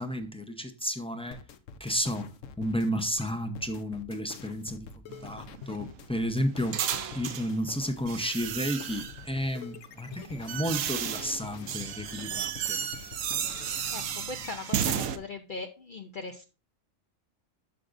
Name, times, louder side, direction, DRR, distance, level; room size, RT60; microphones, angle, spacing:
voice 1, 0.0-1.4 1.8-2.3 2.6-6.8 7.1-12.8, equal, 5° left, 0.4 m, -32 dB
sound 1, 1.3-14.8, left 6 dB, 70° left, 1.0 m, -46 dB
sound 2, 5.1-7.5 8.1-9.3 10.0-15.2, right 9 dB, 75° right, 1.0 m, -33 dB
voice 2, 14.3-16.4, left 3 dB, 55° left, 0.6 m, -39 dB
13.0 x 5.0 x 2.5 m
omnidirectional pair, 1.4 m